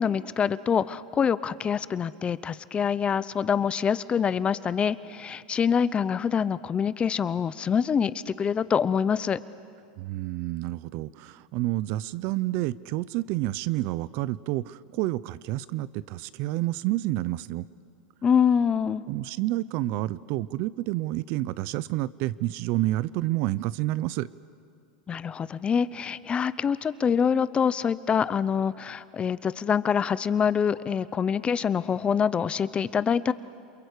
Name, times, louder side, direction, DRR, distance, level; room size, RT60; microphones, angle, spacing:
voice 1, 0.0-9.4 18.2-19.0 25.1-33.3, left 7 dB, 20° left, 17 dB, 0.7 m, -25 dB
voice 2, 10.0-17.7 19.1-24.3, right 16 dB, 55° right, 19 dB, 0.7 m, -29 dB
28.5 x 22.5 x 8.3 m, 2.3 s
supercardioid pair, 125°, 5 cm